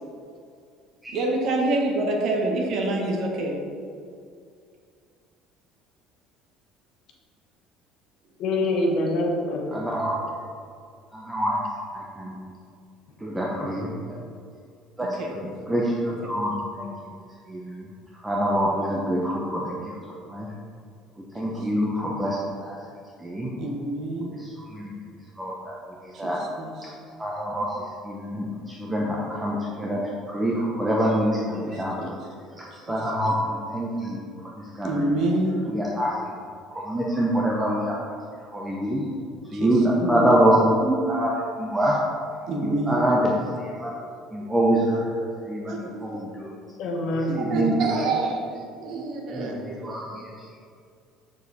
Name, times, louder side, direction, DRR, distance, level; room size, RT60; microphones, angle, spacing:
voice 1, 1.1-3.6 15.0-15.3 23.6-24.3 26.1-26.7 32.0-32.1 32.9-33.0 34.8-35.6 39.5-39.7 42.5-43.0 45.7-46.2 47.3-48.4 48.8-49.6, right 2 dB, 45° right, 1 dB, 1.3 m, -26 dB
voice 2, 8.4-9.6 40.0-40.2 46.8-47.3, left 2 dB, 50° left, 0 dB, 1.3 m, -25 dB
voice 3, 9.7-10.2 11.1-11.7 11.9-12.4 13.2-14.2 15.0-17.1 17.5-17.9 18.1-19.9 20.2-20.5 21.3-22.8 23.2-23.5 24.2-24.9 25.4-25.7 26.0-26.4 26.8-26.9 27.2-30.0 30.3-32.1 32.6-35.1 35.7-36.3 36.7-38.2 38.5-39.0 39.5-41.3 41.6-42.0 42.6-43.3 43.6-44.0 44.3-45.0 45.5-46.5 47.1-47.8 48.2-48.3 48.9-49.0 49.3-50.3, right 1 dB, 5° right, -3 dB, 0.7 m, -26 dB
7.2 x 6.8 x 4.1 m, 2.3 s
cardioid pair, 170°, 0 cm